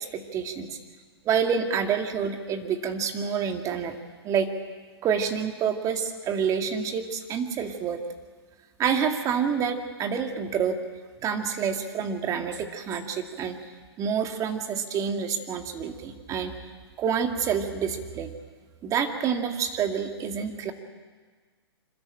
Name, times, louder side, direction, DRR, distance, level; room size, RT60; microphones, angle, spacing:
voice 1, 0.0-0.8 1.3-4.0 4.2-4.5 5.0-8.0 8.8-10.8 11.2-13.6 14.0-16.5 17.0-18.3 18.8-20.7, right 7 dB, 25° right, 5 dB, 2.0 m, -28 dB
25.5 x 13.0 x 8.9 m, 1.5 s
hypercardioid pair, 125°, 14 cm